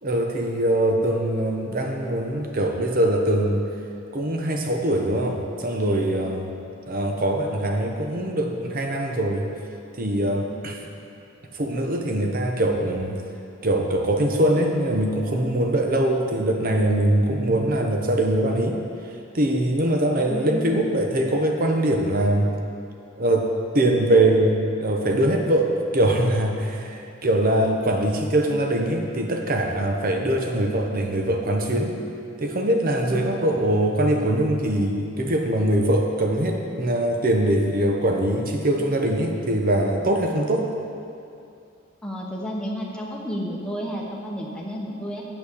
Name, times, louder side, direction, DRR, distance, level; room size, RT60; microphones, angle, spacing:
voice 1, 0.0-3.6 4.1-6.5 6.9-9.5 10.0-10.8 11.5-13.2 13.6-18.8 19.3-22.5 23.2-31.9 32.4-40.7, right 1 dB, 40° right, 2 dB, 0.9 m, -22 dB
voice 2, 20.2-20.8 33.1-33.7 42.0-45.2, equal, 5° left, -3 dB, 1.0 m, -32 dB
8.4 x 6.2 x 6.3 m, 2.6 s
head